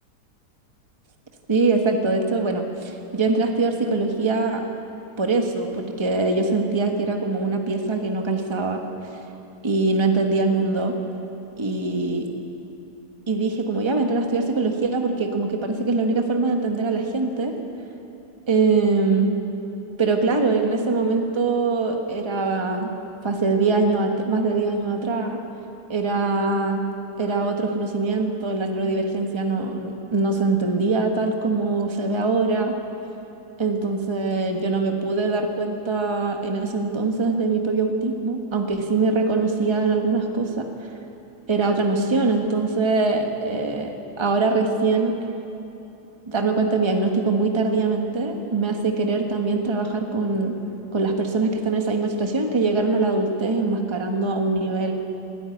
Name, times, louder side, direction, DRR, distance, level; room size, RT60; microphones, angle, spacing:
voice 1, 1.5-4.6 5.2-8.8 9.6-10.9 11.6-12.3 13.3-17.5 18.5-19.3 20.0-22.9 23.2-25.4 25.9-26.8 27.2-32.7 33.6-40.9 41.5-45.1 46.3-50.5 50.9-54.9, right 3 dB, 20° right, 3 dB, 1.3 m, -23 dB
20.5 x 13.0 x 9.6 m, 2.9 s
omnidirectional pair, 1.8 m